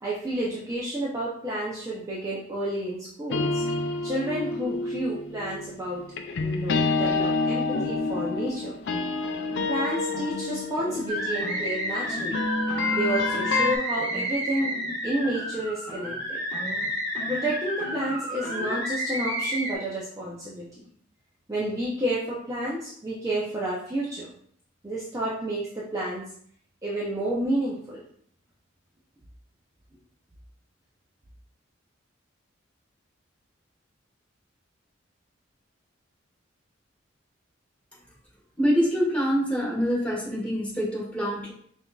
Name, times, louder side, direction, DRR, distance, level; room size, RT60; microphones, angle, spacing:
voice 1, 0.0-3.6 4.0-6.0 6.4-8.7 9.7-12.5 12.9-14.7 15.0-16.4 17.3-20.9 21.5-24.3 24.8-26.2 26.8-28.0, right 1 dB, 15° right, -6 dB, 0.5 m, -30 dB
sound 1, 3.3-13.8, left 3 dB, 60° left, 0.4 m, -28 dB
sound 2, 8.9-9.0 9.5-9.7 10.1-10.3 10.8-11.0 11.4-11.6 12.0-12.3 12.7-12.9 13.3-13.6 14.0-14.3 14.6-15.0 15.2-15.6 15.9-16.2 16.5-18.8, left 2 dB, 25° left, 1.3 m, -39 dB
sound 3, 11.1-19.8, equal, 35° right, 1.2 m, -31 dB
voice 2, 38.6-41.5, equal, 5° left, -6 dB, 1.3 m, -25 dB
5.6 x 2.6 x 2.3 m, 0.63 s
head